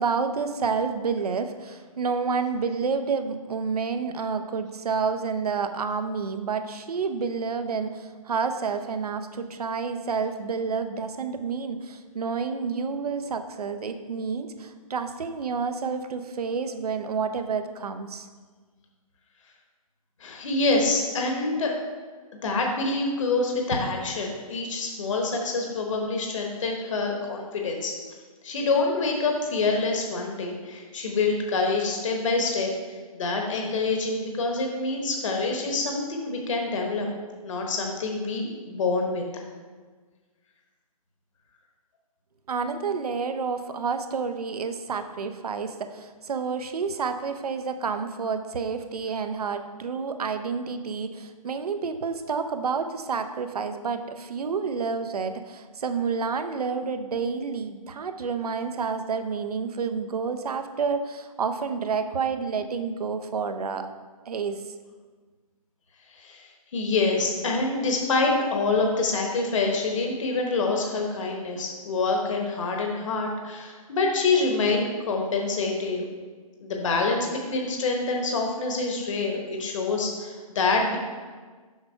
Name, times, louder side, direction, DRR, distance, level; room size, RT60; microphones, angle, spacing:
voice 1, 0.0-18.3 42.5-63.9 64.3-64.6, right 5 dB, 85° right, 8 dB, 0.7 m, -29 dB
voice 2, 20.2-21.7 22.4-27.9 28.4-37.1 37.4-39.2 66.1-76.1 76.6-81.0, left 3 dB, 55° left, 1 dB, 1.1 m, -26 dB
6.7 x 5.8 x 4.4 m, 1.5 s
hypercardioid pair, 160°, 19 cm